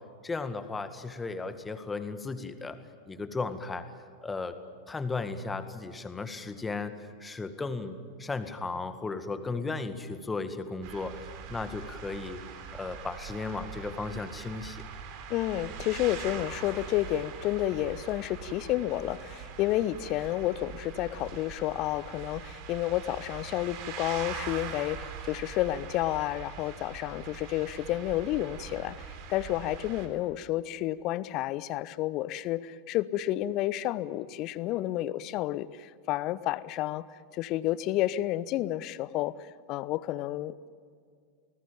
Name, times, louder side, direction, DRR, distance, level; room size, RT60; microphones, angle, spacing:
voice 1, 0.2-2.8 3.1-3.9 4.2-4.6 4.9-11.2 11.5-12.4 12.7-14.8, left 3 dB, 10° left, 9 dB, 1.9 m, -35 dB
sound 1, 10.8-30.1, right 7 dB, 45° right, 3.7 m, -42 dB
voice 2, 15.3-29.0 29.3-37.0 37.3-40.7, left 14 dB, 40° left, 18 dB, 0.8 m, -30 dB
28.0 x 20.0 x 9.0 m, 2.2 s
figure-of-eight pair, 90°, 0 cm